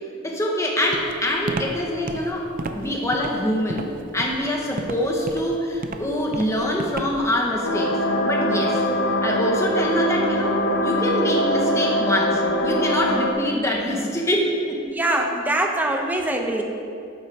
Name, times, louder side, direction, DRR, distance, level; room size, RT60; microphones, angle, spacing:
voice 1, 0.2-8.0 8.2-14.8, equal, 15° left, -1 dB, 1.2 m, -25 dB
Walk footsteps, 0.9-7.4, right 2 dB, 45° right, 0.5 m, -32 dB
sound 1, 7.6-13.3, equal, 70° left, 1.0 m, -22 dB
voice 2, 14.9-16.6, right 1 dB, 10° right, 2 dB, 0.7 m, -23 dB
11.5 x 9.0 x 3.6 m, 2.6 s
head